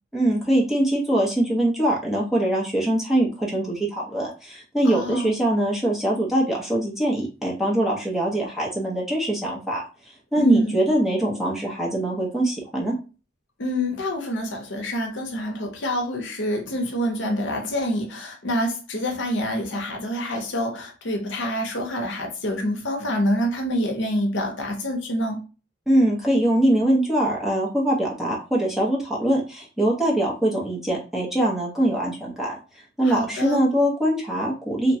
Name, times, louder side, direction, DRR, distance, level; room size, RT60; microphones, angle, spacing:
voice 1, 0.1-9.8 10.3-12.9 25.9-32.6 33.0-35.0, right 1 dB, ahead, 0.8 m, -23 dB
voice 2, 4.8-5.3 10.4-10.8 13.6-25.4 33.0-33.6, equal, 65° left, 0.7 m, -26 dB
2.9 x 2.2 x 2.7 m
head